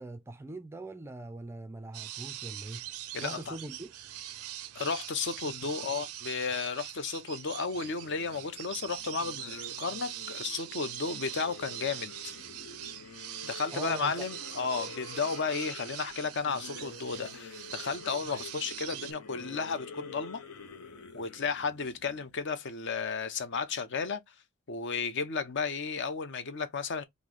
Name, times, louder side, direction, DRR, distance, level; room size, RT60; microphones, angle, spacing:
voice 1, 0.0-2.8 3.2-3.9 13.7-14.1, right 2 dB, 10° right, 0.3 m, -42 dB
sound 1, 1.9-19.1, right 13 dB, 85° right, 0.5 m, -43 dB
voice 2, 3.1-3.6 4.8-12.1 13.4-20.4 21.1-24.2 24.7-27.0, left 5 dB, 55° left, 0.6 m, -33 dB
sound 2, 7.7-22.6, left 4 dB, 90° left, 0.7 m, -48 dB
3.1 x 2.6 x 3.7 m
head